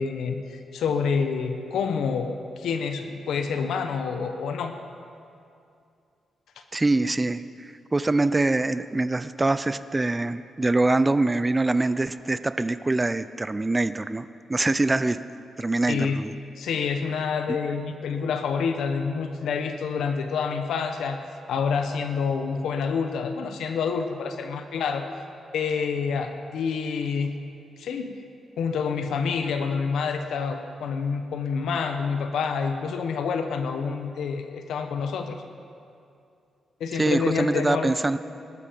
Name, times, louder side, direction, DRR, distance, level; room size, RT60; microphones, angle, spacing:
voice 1, 0.0-4.7 15.9-16.2 16.6-21.2 21.5-25.1 25.5-27.3 27.8-28.2 28.6-35.4 36.8-37.9, left 5 dB, 85° left, 7 dB, 1.0 m, -27 dB
voice 2, 6.7-15.2 15.6-16.3 17.5-17.6 36.9-38.2, right 2 dB, 20° right, 13 dB, 0.5 m, -24 dB
19.5 x 13.0 x 5.2 m, 2.5 s
cardioid pair, 105°, 0 cm